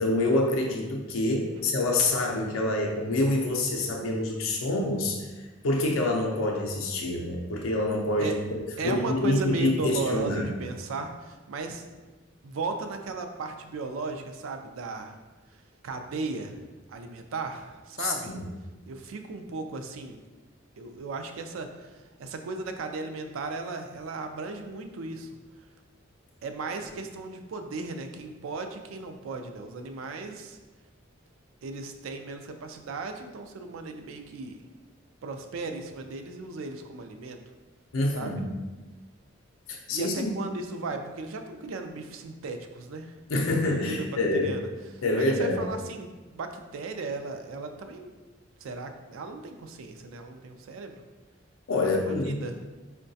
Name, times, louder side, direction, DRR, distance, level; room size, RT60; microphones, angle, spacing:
voice 1, 0.0-5.3 5.6-10.5 18.0-18.5 37.9-38.5 39.7-40.3 43.3-44.5 45.0-45.6 51.7-52.5, left 2 dB, 90° left, 0 dB, 0.5 m, -26 dB
voice 2, 8.8-11.8 12.4-15.2 15.8-16.6 16.9-18.3 18.9-20.2 20.8-25.3 26.4-30.6 31.6-34.6 35.2-37.4 38.1-38.4 39.9-43.1 43.7-44.1 44.4-44.7 44.9-48.1 48.6-51.0 51.8-52.6, right 3 dB, 85° right, 6 dB, 0.4 m, -36 dB
4.5 x 2.2 x 2.6 m, 1.2 s
head